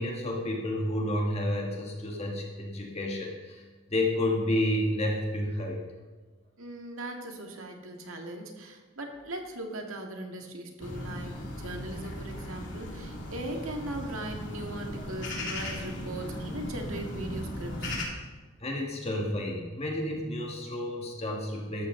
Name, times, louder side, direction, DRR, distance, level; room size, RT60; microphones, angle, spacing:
voice 1, 0.0-5.8 18.6-21.9, left 1 dB, 30° left, -1 dB, 1.7 m, -30 dB
voice 2, 6.6-18.0, right 1 dB, 70° right, 2 dB, 1.9 m, -39 dB
sound 1, 10.8-18.0, left 1 dB, 55° left, 2.6 m, -37 dB
13.0 x 13.0 x 3.8 m, 1.3 s
head